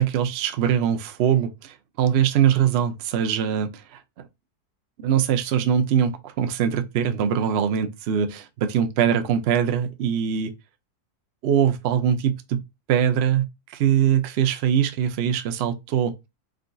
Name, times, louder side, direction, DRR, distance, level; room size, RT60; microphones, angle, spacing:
voice 1, 0.0-4.0 5.0-10.5 11.4-12.6 12.9-16.3, right 8 dB, 75° right, 0.6 m, -22 dB
3.7 x 2.2 x 2.5 m
omnidirectional pair, 1.6 m